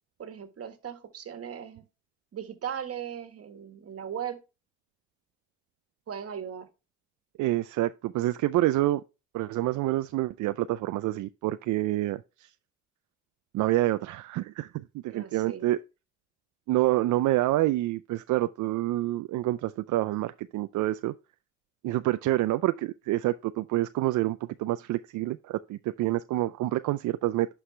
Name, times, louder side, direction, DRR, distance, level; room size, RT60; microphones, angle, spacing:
voice 1, 0.2-1.8 2.3-4.4 6.1-6.7 15.1-15.7, right 8 dB, 50° right, 1.6 m, -38 dB
voice 2, 7.4-9.0 9.3-12.2 13.5-15.8 16.7-21.1 21.8-27.5, right 16 dB, 80° right, 0.5 m, -27 dB
11.5 x 4.8 x 3.2 m
cardioid pair, 90°, 30 cm